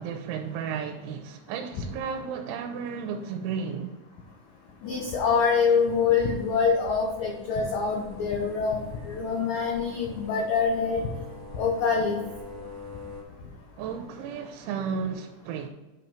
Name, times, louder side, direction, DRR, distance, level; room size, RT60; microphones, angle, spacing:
voice 1, 0.0-4.0 13.8-15.7, right 6 dB, 85° right, 3.0 m, -33 dB
voice 2, 4.8-11.0 11.5-12.2, left 5 dB, 85° left, 1.9 m, -25 dB
sound 1, 4.8-13.2, left 4 dB, 10° left, 1.4 m, -44 dB
8.8 x 5.4 x 4.4 m
omnidirectional pair, 5.4 m